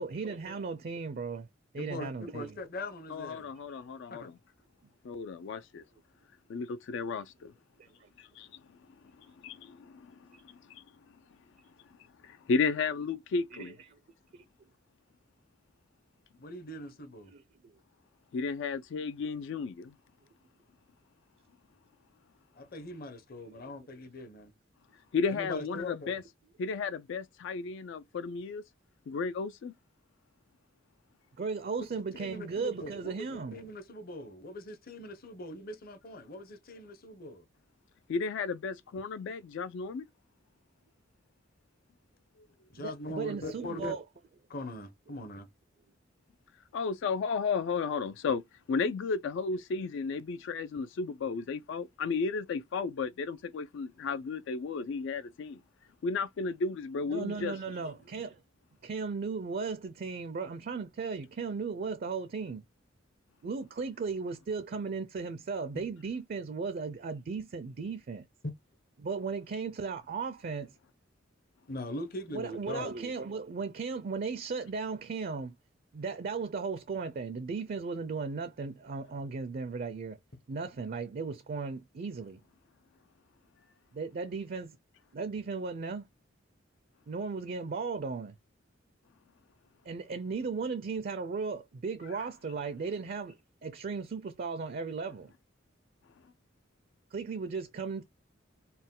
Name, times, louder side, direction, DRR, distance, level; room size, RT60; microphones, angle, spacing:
voice 1, 0.0-1.5 1.7-2.6 7.8-8.1 10.3-10.4 13.5-14.0 14.3-14.4 17.3-17.8 23.4-23.7 31.4-33.6 42.8-44.0 57.1-58.4 58.8-62.6 63.4-68.3 69.0-70.8 72.3-75.6 75.9-80.2 80.5-82.4 83.9-84.8 85.1-86.1 87.1-88.4 89.9-95.3 97.1-98.0, right 4 dB, 45° right, 0.4 m, -36 dB
voice 2, 1.7-3.5 4.1-4.3 16.4-17.3 22.5-24.5 25.3-26.2 31.9-37.4 42.7-44.0 44.5-45.5 71.7-72.9, left 1 dB, 50° left, 0.8 m, -41 dB
voice 3, 3.1-4.3 5.0-5.8 6.5-7.5 8.2-8.6 9.2-10.8 12.2-13.7 18.3-19.9 25.1-26.2 26.6-28.6 29.1-29.7 38.1-40.0 46.7-48.4 48.7-55.6 56.0-57.5, left 4 dB, 65° left, 0.3 m, -33 dB
4.1 x 2.1 x 3.7 m
head